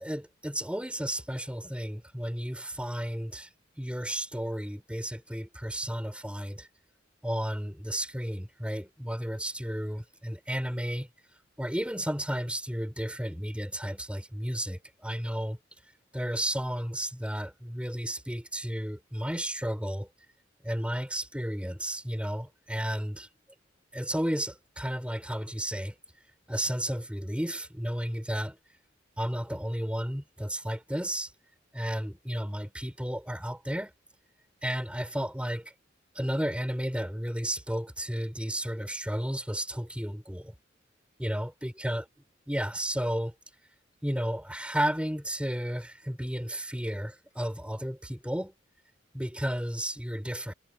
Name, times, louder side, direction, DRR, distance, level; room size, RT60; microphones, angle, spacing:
voice 1, 0.0-3.5 3.8-6.7 7.2-11.1 11.6-15.6 16.1-20.1 20.6-23.3 23.9-25.9 26.5-28.6 29.2-31.3 31.7-33.9 34.6-35.7 36.2-40.5 41.2-42.0 42.5-43.3 44.0-48.5 49.1-50.5, equal, 5° right, 7.0 m, -33 dB
head